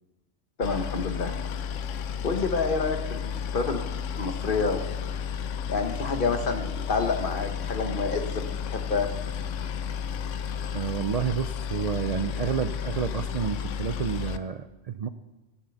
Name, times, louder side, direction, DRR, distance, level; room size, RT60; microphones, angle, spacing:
Boat Water vehicle, 0.6-14.4, left 7 dB, 85° left, 1.0 m, -32 dB
voice 1, 0.6-1.3 2.2-3.8 4.2-4.8 5.7-9.1, left 4 dB, 45° left, 6 dB, 1.3 m, -28 dB
voice 2, 10.6-15.1, right 7 dB, 75° right, 10 dB, 0.3 m, -30 dB
16.5 x 7.4 x 7.0 m, 1.1 s
omnidirectional pair, 1.3 m